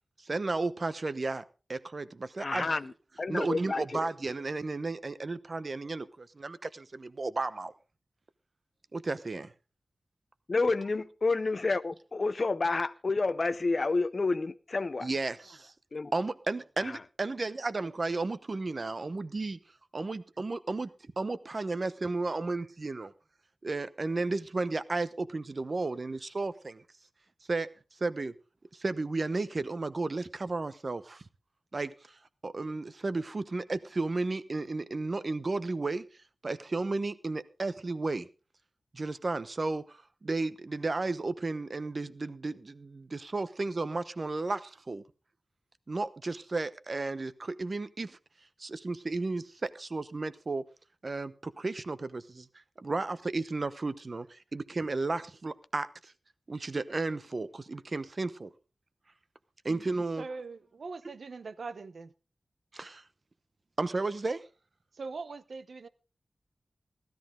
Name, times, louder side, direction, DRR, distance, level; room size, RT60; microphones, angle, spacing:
voice 1, 0.2-1.4 1.7-2.8 3.3-7.7 8.9-9.5 15.0-15.7 16.1-19.6 19.9-20.9 21.2-23.1 23.6-26.8 27.5-27.7 28.0-28.3 28.7-31.2 31.7-31.9 32.4-36.0 36.4-38.3 38.9-45.0 45.9-48.2 48.6-50.6 51.0-52.5 52.8-56.1 56.5-58.5 59.6-60.3 62.7-63.0 63.8-64.4, right 3 dB, 45° right, 0.9 m, -33 dB
voice 2, 2.4-2.9 3.2-4.1 10.5-15.1 15.9-16.1 16.8-17.0, left 3 dB, 45° left, 0.6 m, -29 dB
voice 3, 60.2-62.1 65.0-65.9, right 4 dB, 75° right, 0.9 m, -41 dB
16.0 x 13.0 x 3.8 m
wide cardioid pair, 115°, 0 cm